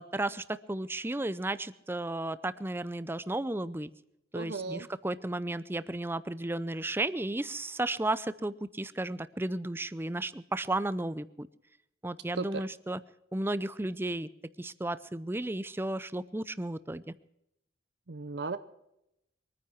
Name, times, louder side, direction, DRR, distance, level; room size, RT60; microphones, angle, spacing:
voice 1, 0.0-3.9 4.3-11.5 12.0-13.0 13.3-14.3 14.6-17.0, right 2 dB, 15° right, 16 dB, 0.5 m, -34 dB
voice 2, 4.3-4.9 12.4-12.7 18.1-18.6, right 3 dB, 65° right, 12 dB, 0.7 m, -35 dB
23.0 x 9.5 x 6.0 m, 0.82 s
head